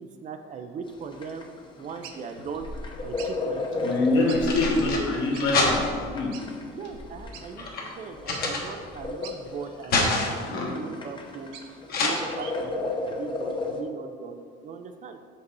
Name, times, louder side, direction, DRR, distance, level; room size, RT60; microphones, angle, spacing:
voice 1, 0.0-1.5 1.8-2.7 3.0-4.4 6.7-11.5 12.0-15.2, right 5 dB, 35° right, 7 dB, 0.4 m, -38 dB
sound 1, 0.9-13.8, left 3 dB, 25° left, 0.7 m, -35 dB
sound 2, 2.0-2.2 3.2-3.3 4.3-4.4 4.7-4.8 5.3-5.5 6.3-6.4 7.3-7.4 7.9-8.0 8.3-8.5 9.2-9.4 10.0-10.1 11.1-11.8 12.1-12.5, right 8 dB, 85° right, 0.6 m, -42 dB
sound 3, 2.4-3.2 4.1-6.2 6.9-9.1 9.5-10.5 11.9-12.1, left 3 dB, 45° left, 1.2 m, -28 dB
voice 2, 3.8-5.8 6.1-6.4 10.5-10.7, left 2 dB, 65° left, -2 dB, 1.5 m, -24 dB
5.7 x 5.3 x 4.0 m, 2.1 s
cardioid pair, 125°, 21 cm